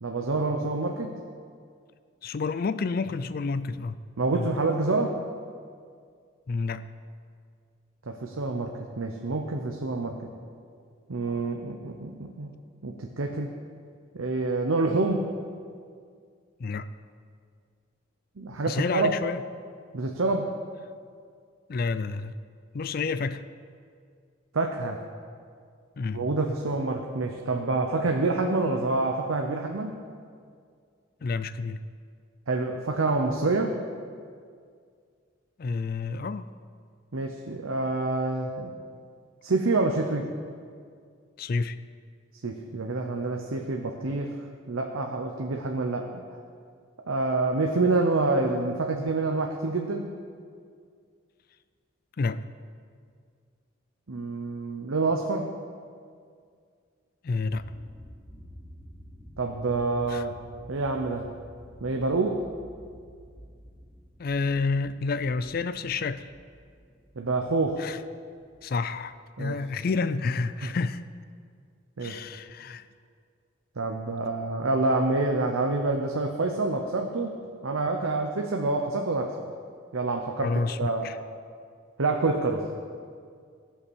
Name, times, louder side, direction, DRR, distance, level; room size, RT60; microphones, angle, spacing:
voice 1, 0.0-1.1 4.2-5.2 8.1-10.2 11.1-12.5 12.8-13.5 14.1-15.3 18.4-19.1 19.9-20.5 24.5-25.0 26.1-29.9 32.5-33.8 37.1-38.7 39.4-40.3 42.4-44.3 44.7-46.2 47.1-50.1 54.1-55.5 59.4-60.3 60.7-61.2 61.8-62.4 67.2-67.8 69.4-69.6 70.6-70.7 72.0-72.2 73.8-77.3 77.6-79.4 79.9-80.5 80.8-81.1 82.0-82.7, right 3 dB, 80° right, 3 dB, 0.8 m, -27 dB
voice 2, 2.2-4.0 4.3-4.5 6.5-6.9 16.6-16.9 18.7-19.4 21.7-22.4 22.7-23.4 26.0-26.3 31.2-31.8 35.6-36.5 41.4-41.8 52.2-52.4 57.2-57.7 60.1-60.3 64.2-66.3 67.8-68.0 68.6-71.0 72.0-72.8 80.4-81.2, left 4 dB, 45° left, 13 dB, 0.4 m, -29 dB
sound 1, 57.5-69.7, equal, 20° right, 1.5 m, -50 dB
16.5 x 5.8 x 6.3 m, 2.1 s
head